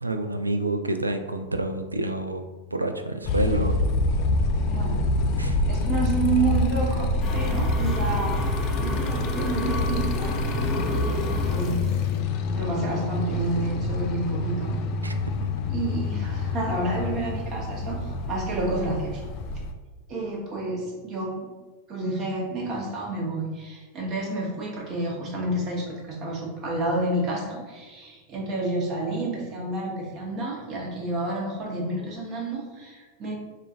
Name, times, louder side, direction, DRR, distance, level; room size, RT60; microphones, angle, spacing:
voice 1, 0.0-2.4 2.7-3.8 5.4-5.6 15.0-15.1, right 1 dB, 80° right, 7 dB, 0.3 m, -28 dB
Motorcycle, 3.2-19.7, left 2 dB, 40° left, 0.3 m, -26 dB
voice 2, 4.7-5.0 5.7-8.4 8.8-10.3 11.0-11.9 12.5-14.8 15.7-19.3 20.1-21.5 21.9-33.3, right 2 dB, 35° right, -2 dB, 1.0 m, -30 dB
sound 1, 7.2-12.2, left 1 dB, 20° left, 0.7 m, -30 dB
4.9 x 2.4 x 2.8 m, 1.3 s
figure-of-eight pair, 90°, 0 cm